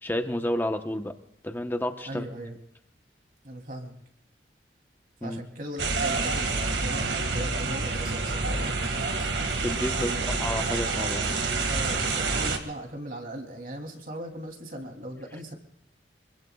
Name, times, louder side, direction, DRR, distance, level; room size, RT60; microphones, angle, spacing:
voice 1, 0.0-1.2 1.4-2.3 5.2-5.4 9.6-10.1 10.4-11.4, left 1 dB, 10° left, 6 dB, 1.0 m, -30 dB
voice 2, 2.1-2.6 3.4-4.0 5.2-8.8 9.9-10.4 11.7-15.5, right 1 dB, 50° right, 2 dB, 3.1 m, -38 dB
sound 1, 5.8-12.6, right 3 dB, 85° right, 1.9 m, -28 dB
25.5 x 23.0 x 2.4 m, 0.75 s
head